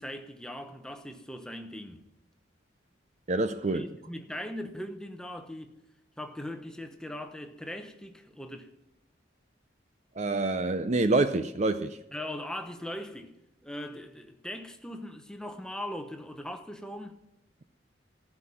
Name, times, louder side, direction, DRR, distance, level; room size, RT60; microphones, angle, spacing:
voice 1, 0.0-2.1 3.7-5.7 6.2-8.7 12.1-13.3 13.6-17.2, left 1 dB, 5° left, 0.9 m, -40 dB
voice 2, 3.3-3.9 10.2-12.0, right 2 dB, 35° right, 0.5 m, -27 dB
15.0 x 5.9 x 9.6 m
head